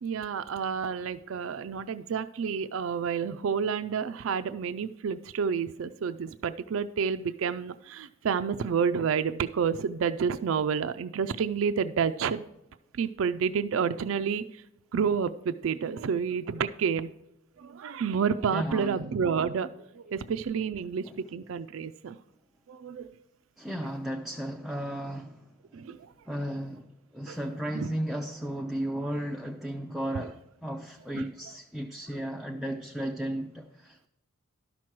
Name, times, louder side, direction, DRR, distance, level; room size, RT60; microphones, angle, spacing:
voice 1, 0.0-12.4 13.0-14.6 14.9-17.1 17.6-21.1 21.3-22.2 22.7-23.1 25.7-26.1 27.3-27.4 27.7-27.9 30.1-30.3 31.1-31.2, right 6 dB, 65° right, 0.4 m, -29 dB
voice 2, 18.5-19.0 21.0-21.2 23.6-25.5 26.3-34.1, equal, ahead, 0.4 m, -34 dB
12.0 x 6.0 x 4.6 m
head